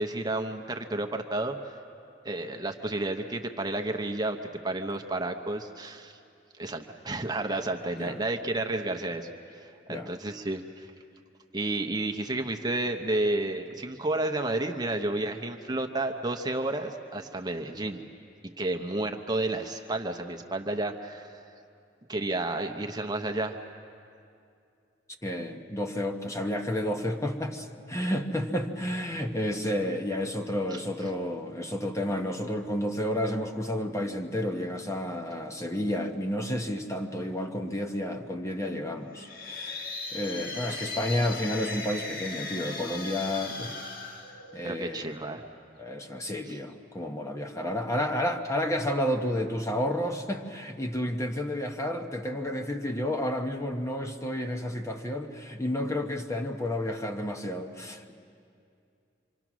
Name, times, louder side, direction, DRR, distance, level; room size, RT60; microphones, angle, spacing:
voice 1, 0.0-1.7 2.2-4.4 4.6-6.2 6.6-10.9 11.5-18.0 18.6-21.4 22.1-23.6 30.7-30.8 44.6-45.4 46.4-46.6, right 2 dB, 20° right, 4 dB, 0.9 m, -31 dB
voice 2, 25.2-39.8 40.1-43.7 44.5-45.3 45.8-58.1, left 1 dB, 15° left, 3 dB, 1.0 m, -31 dB
sound 1, 39.1-45.0, left 3 dB, 50° left, 1.6 m, -38 dB
26.0 x 25.0 x 6.2 m, 2.5 s
head